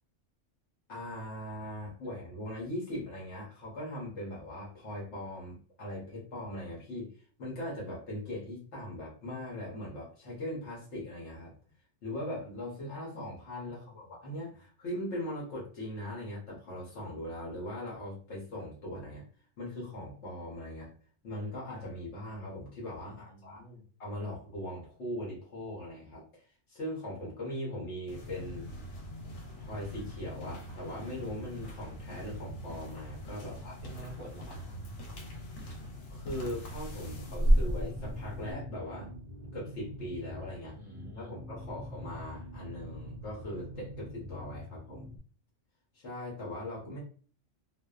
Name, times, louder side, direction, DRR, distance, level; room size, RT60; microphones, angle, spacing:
voice 1, 0.9-7.1 7.4-11.5 12.0-19.2 19.6-20.9 21.2-23.6 24.0-28.7 29.6-33.8 36.1-39.1 39.5-40.7 41.2-45.1 45.9-47.0, left 1 dB, 65° left, -5 dB, 1.1 m, -40 dB
voice 2, 13.7-14.0 23.0-23.8 33.4-33.5 33.8-34.6 40.7-41.4, equal, 25° left, -5 dB, 1.1 m, -49 dB
sound 1, 28.1-38.5, equal, 90° left, 1.0 m, -35 dB
sound 2, 37.2-45.2, left 1 dB, 70° right, 0.4 m, -45 dB
2.5 x 2.1 x 2.2 m, 0.42 s
omnidirectional pair, 1.3 m